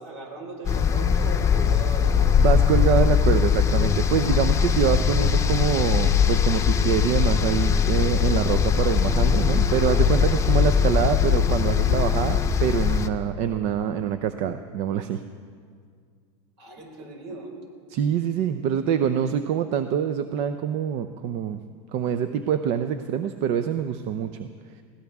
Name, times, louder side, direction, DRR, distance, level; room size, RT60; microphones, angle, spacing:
voice 1, 0.0-2.7 16.6-17.6, right 2 dB, 70° right, 1 dB, 5.0 m, -39 dB
sound 1, 0.7-13.1, left 7 dB, 20° left, 0.8 m, -21 dB
voice 2, 2.4-15.2 17.9-21.6 21.9-24.5 24.8-24.9, right 8 dB, 50° right, 10 dB, 0.6 m, -25 dB
22.0 x 17.0 x 3.6 m, 2.1 s
supercardioid pair, 125°, 15 cm